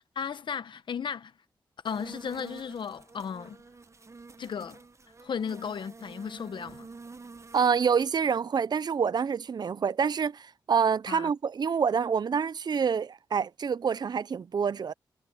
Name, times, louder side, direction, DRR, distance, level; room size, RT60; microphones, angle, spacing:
voice 1, 0.1-1.3 1.8-3.6 4.4-4.8 5.2-6.9 11.1-11.3, left 7 dB, 70° left, 1.2 m, -35 dB
sound 1, 1.8-7.7, right 4 dB, 35° right, 1.0 m, -48 dB
voice 2, 7.5-14.9, right 6 dB, 55° right, 0.6 m, -27 dB
cardioid pair, 50°, 8 cm